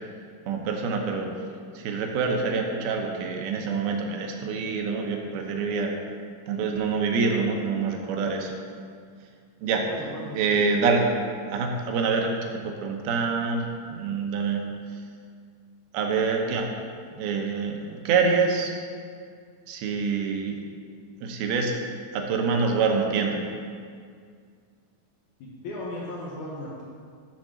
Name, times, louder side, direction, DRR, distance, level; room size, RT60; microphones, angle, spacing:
voice 1, 0.5-1.3 1.8-5.9 6.5-8.5 9.6-9.8 10.3-11.2 11.5-12.3 12.6-14.6 15.9-16.7 17.1-18.7 19.7-20.6 21.2-21.7 22.1-23.4, right 5 dB, 80° right, 2 dB, 2.6 m, -26 dB
voice 2, 9.9-10.4 25.4-26.8, left 1 dB, 70° left, -5 dB, 2.0 m, -36 dB
7.5 x 4.3 x 6.1 m, 2.1 s
omnidirectional pair, 4.4 m